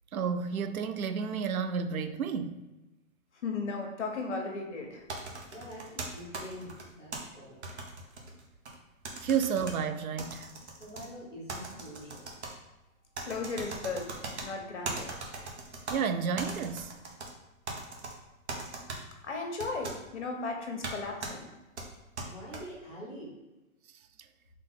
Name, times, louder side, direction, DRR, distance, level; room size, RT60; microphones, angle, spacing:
voice 1, 0.1-2.6 9.2-10.5 15.9-16.9, right 6 dB, 85° right, 0.6 m, -31 dB
voice 2, 3.4-5.0 13.3-15.1 19.2-21.5, left 3 dB, 55° left, 1.0 m, -36 dB
sound 1, 5.1-7.2 7.6-8.7 9.0-9.7 10.2-11.0 11.5-12.5 13.1-14.5 14.8-16.0 16.4-17.3 17.7-18.1 18.5-19.0 19.6-20.0 20.8-20.9 21.2-21.3 21.8-22.6, right 3 dB, 55° right, 1.0 m, -39 dB
voice 3, 5.5-7.6 10.8-12.3 22.2-23.3, equal, ahead, 0.6 m, -45 dB
4.0 x 3.1 x 3.6 m
hypercardioid pair, 160°, 41 cm